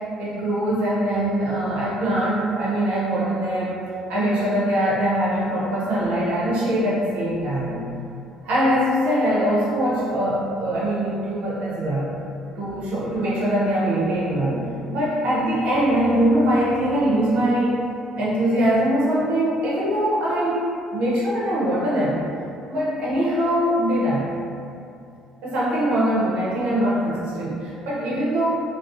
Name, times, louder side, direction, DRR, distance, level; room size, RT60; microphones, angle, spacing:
voice 1, 0.2-3.8 4.1-7.8 8.4-12.2 12.6-17.8 18.2-22.2 22.7-24.3 25.4-28.5, right 1 dB, 60° right, -6 dB, 0.6 m, -22 dB
2.4 x 2.0 x 2.6 m, 2.5 s
hypercardioid pair, 60°, 2 cm